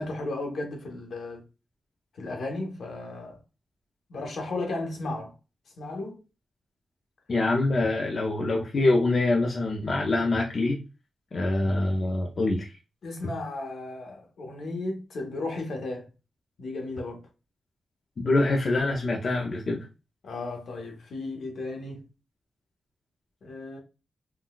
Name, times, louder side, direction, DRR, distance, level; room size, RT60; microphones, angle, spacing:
voice 1, 0.0-1.4 2.1-3.4 4.1-5.3 5.8-6.2 13.0-16.1 16.6-17.3 20.2-22.0 23.4-23.8, left 2 dB, 75° left, 0.9 m, -34 dB
voice 2, 7.3-10.8 11.3-12.7 18.2-19.9, left 2 dB, 45° left, 0.5 m, -25 dB
3.8 x 2.2 x 2.3 m
wide cardioid pair, 115°, 0 cm